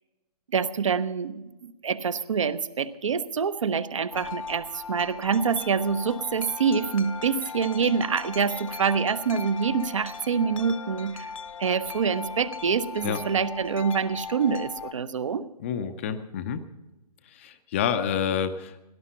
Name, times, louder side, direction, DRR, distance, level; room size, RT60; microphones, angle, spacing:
voice 1, 0.5-11.3 11.6-15.5, right 6 dB, 50° right, 14 dB, 0.7 m, -26 dB
Wind chime, 4.1-14.9, left 6 dB, 55° left, 0.9 m, -39 dB
voice 2, 15.6-16.6 17.3-18.9, left 8 dB, 20° left, 9 dB, 0.5 m, -28 dB
17.5 x 11.0 x 5.7 m, 1.0 s
figure-of-eight pair, 145°, 21 cm